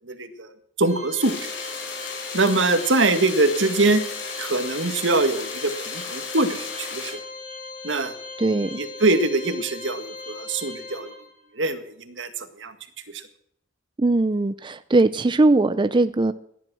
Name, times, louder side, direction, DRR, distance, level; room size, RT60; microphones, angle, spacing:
voice 1, 0.0-0.5 0.8-1.5 2.3-4.0 4.4-7.2 7.8-8.1 8.4-11.1 11.5-12.7 13.1-13.2, right 2 dB, 75° right, 8 dB, 1.9 m, -23 dB
Organ, 0.9-11.5, left 3 dB, 15° left, 7.1 m, -39 dB
sound 1, 1.2-7.1, left 5 dB, 85° left, 5.2 m, -35 dB
voice 2, 8.4-8.8 14.0-16.3, right 2 dB, 25° right, 12 dB, 0.5 m, -20 dB
17.0 x 11.0 x 6.2 m, 0.70 s
head